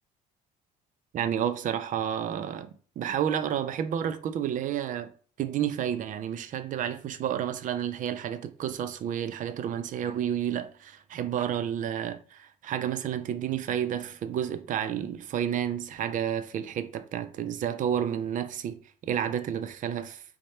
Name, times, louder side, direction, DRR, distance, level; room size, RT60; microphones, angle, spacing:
voice 1, 1.1-2.7 3.0-5.1 5.4-20.2, right 9 dB, 50° right, 0.4 m, -30 dB
3.1 x 2.1 x 4.2 m
cardioid pair, 110°, 17 cm